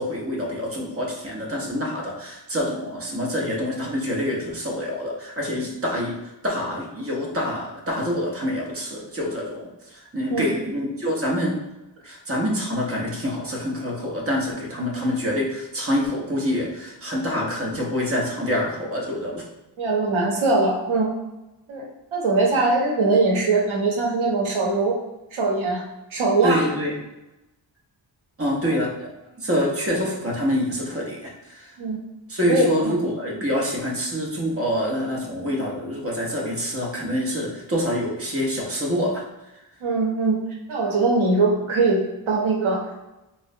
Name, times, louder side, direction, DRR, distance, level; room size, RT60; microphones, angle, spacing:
voice 1, 0.0-6.1 6.4-11.6 12.0-19.4 26.4-26.9 28.4-29.1 29.4-31.7 32.3-39.2, equal, 30° right, -2 dB, 0.8 m, -26 dB
voice 2, 19.8-21.1 21.7-21.8 22.1-25.0 25.3-25.8 26.1-26.7 28.6-28.7 31.8-32.0 32.5-32.9 39.8-40.4 40.7-43.1, right 3 dB, 90° right, -1 dB, 0.8 m, -21 dB
4.5 x 2.1 x 2.6 m, 0.97 s
wide cardioid pair, 90°, 47 cm